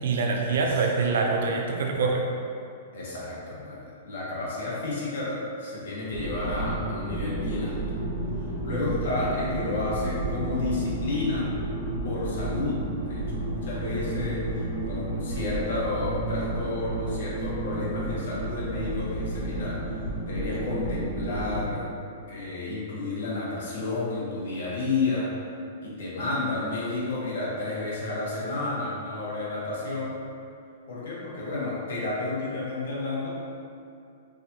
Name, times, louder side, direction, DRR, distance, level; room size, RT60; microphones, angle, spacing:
voice 1, 0.0-2.2, right 4 dB, 65° right, 1 dB, 0.5 m, -25 dB
voice 2, 2.9-7.8 8.6-11.5 12.0-12.8 13.1-19.8 20.2-21.9 22.3-25.3 25.8-30.1 30.9-33.3, left 2 dB, 75° left, -6 dB, 1.2 m, -31 dB
sound 1, 6.1-21.7, right 1 dB, 5° right, 0.9 m, -31 dB
4.8 x 2.5 x 2.8 m, 2.5 s
supercardioid pair, 180°, 0 cm